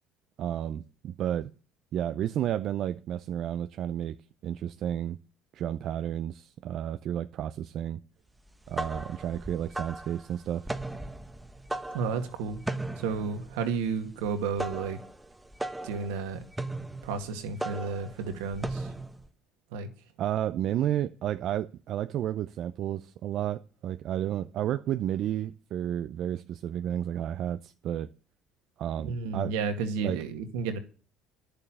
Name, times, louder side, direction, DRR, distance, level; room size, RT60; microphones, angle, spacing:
voice 1, 0.4-1.5 1.9-4.2 4.4-5.2 5.5-8.0 8.7-10.7 20.2-28.1 28.8-29.5 30.0-30.2, right 11 dB, 60° right, 0.6 m, -31 dB
sound 1, 8.5-19.3, right 2 dB, 10° right, 1.2 m, -37 dB
voice 2, 11.9-12.6 13.0-15.0 15.8-16.4 17.0-18.9 19.7-19.9 29.0-30.8, right 5 dB, 80° right, 2.0 m, -32 dB
11.0 x 6.9 x 8.9 m
hypercardioid pair, 70°, 0 cm